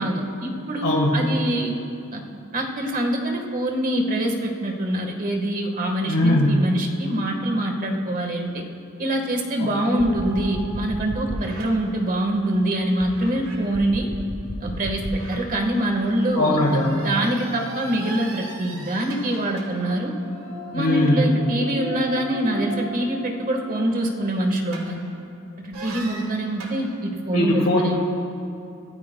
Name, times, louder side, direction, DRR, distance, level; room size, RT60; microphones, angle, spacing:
voice 1, 0.0-1.7 2.1-2.2 2.5-8.6 9.0-14.1 14.6-20.1 20.7-25.0 25.6-28.0, right 1 dB, 40° right, 2 dB, 1.4 m, -24 dB
voice 2, 0.8-1.2 6.1-6.8 9.6-9.7 16.3-17.0 20.7-21.3 27.3-28.0, left 1 dB, 75° left, -2 dB, 1.5 m, -20 dB
sound 1, 9.8-12.5 13.0-25.3 25.7-26.8, equal, 85° right, 2.1 m, -36 dB
23.5 x 13.5 x 2.3 m, 2.8 s
head